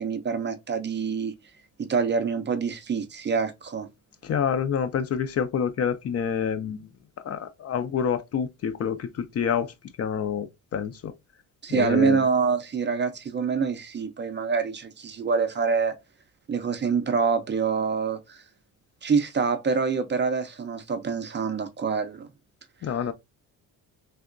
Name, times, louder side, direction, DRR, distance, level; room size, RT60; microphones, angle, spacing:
voice 1, 0.0-1.3 1.8-3.9 11.6-15.9 16.5-18.4 19.0-22.3, right 5 dB, 30° right, 0.4 m, -26 dB
voice 2, 4.2-6.9 7.2-10.5 10.7-11.1 11.7-12.2 22.8-23.1, left 7 dB, 45° left, 0.4 m, -27 dB
3.4 x 2.8 x 2.5 m
cardioid pair, 115°, 36 cm